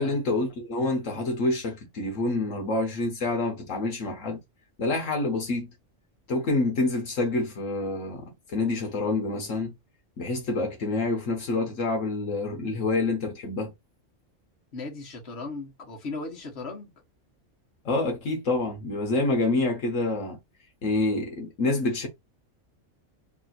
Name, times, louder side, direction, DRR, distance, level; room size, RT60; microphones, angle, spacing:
voice 1, 0.0-4.4 4.8-5.7 6.3-9.7 10.2-13.7 17.8-20.4 20.8-22.1, left 2 dB, 75° left, 1.4 m, -27 dB
voice 2, 14.7-16.9, left 3 dB, 55° left, 1.5 m, -37 dB
3.5 x 2.5 x 4.1 m
omnidirectional pair, 1.3 m